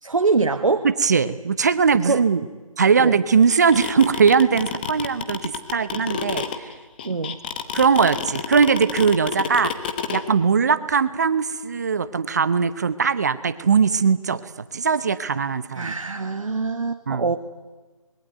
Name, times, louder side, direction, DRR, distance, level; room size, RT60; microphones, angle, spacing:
voice 1, 0.0-0.9 2.0-2.2 3.0-3.2 7.0-7.4 15.7-17.4, right 4 dB, 60° right, 8 dB, 1.5 m, -23 dB
voice 2, 0.8-2.4 2.8-6.7 7.7-9.7 10.1-14.4 14.7-15.9 17.1-17.3, right 5 dB, 30° right, 15 dB, 0.9 m, -20 dB
sound 1, 3.5-10.2, left 8 dB, 15° left, 1.2 m, -28 dB
24.5 x 22.0 x 9.3 m, 1.3 s
figure-of-eight pair, 160°, 18 cm